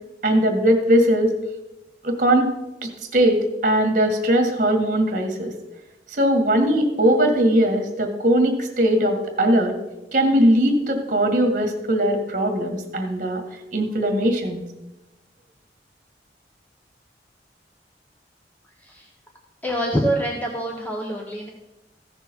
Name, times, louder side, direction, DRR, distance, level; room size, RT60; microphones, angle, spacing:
voice 1, 0.2-1.3 2.0-2.6 2.8-5.5 6.1-9.8 10.1-13.4 13.7-14.6, right 1 dB, 45° right, 4 dB, 1.9 m, -20 dB
voice 2, 18.8-19.1 19.6-21.5, equal, 10° left, 0 dB, 1.0 m, -25 dB
15.0 x 6.3 x 4.5 m, 0.98 s
head